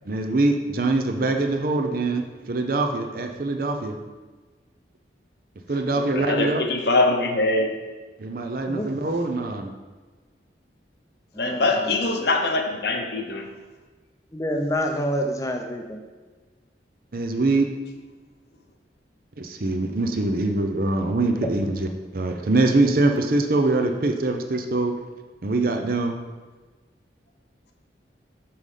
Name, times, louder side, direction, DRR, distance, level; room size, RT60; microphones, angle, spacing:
voice 1, 0.0-4.0 5.7-6.6 8.2-9.7 17.1-17.7 19.4-25.0 25.4-26.2, right 2 dB, 50° right, 5 dB, 0.6 m, -23 dB
voice 2, 6.1-7.7 11.4-13.5, left 2 dB, 60° left, 3 dB, 0.8 m, -23 dB
voice 3, 11.3-11.9 14.3-16.0, equal, 20° left, 4 dB, 0.6 m, -28 dB
5.7 x 5.4 x 4.9 m, 1.3 s
head